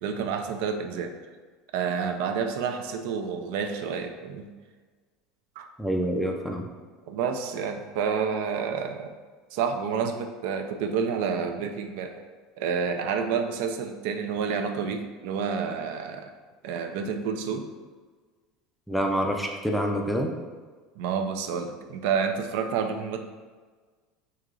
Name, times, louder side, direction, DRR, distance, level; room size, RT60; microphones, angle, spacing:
voice 1, 0.0-1.1 1.7-4.5 5.6-5.7 7.1-9.1 9.5-12.1 12.6-16.3 16.6-17.6 21.0-23.2, right 6 dB, 70° right, 6 dB, 0.4 m, -29 dB
voice 2, 5.8-6.6 18.9-20.3, equal, ahead, 1 dB, 0.4 m, -26 dB
6.1 x 2.8 x 2.4 m, 1.5 s
cardioid pair, 160°, 0 cm